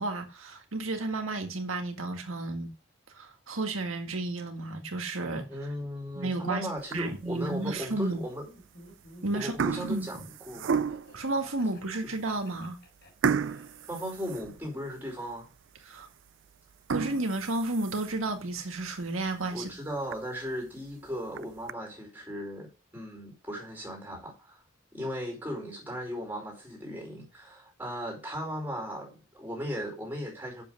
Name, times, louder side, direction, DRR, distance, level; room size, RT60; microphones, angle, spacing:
voice 1, 0.0-2.7 3.1-5.5 6.2-6.7 6.9-8.2 9.2-9.5 9.9-10.2 11.1-12.8 15.9-16.1 16.9-19.7, right 2 dB, 80° right, 2.0 m, -32 dB
voice 2, 5.5-8.5 9.3-10.2 10.4-10.8 13.9-15.5 19.5-24.6 24.9-30.6, equal, 10° right, 4.9 m, -37 dB
sound 1, 6.8-7.3 7.9-8.0 8.8-9.1 9.4-11.2 11.8-11.9 12.3-12.4 13.2-15.0 15.4-15.5 16.0-16.1 16.7-18.3 18.8-18.9 19.3-19.4 19.7-19.8 20.1-20.2 21.1-21.7, right 6 dB, 65° right, 0.4 m, -32 dB
Laughter, 8.4-14.4, left 1 dB, 50° left, 6.5 m, -53 dB
7.6 x 7.3 x 6.4 m
head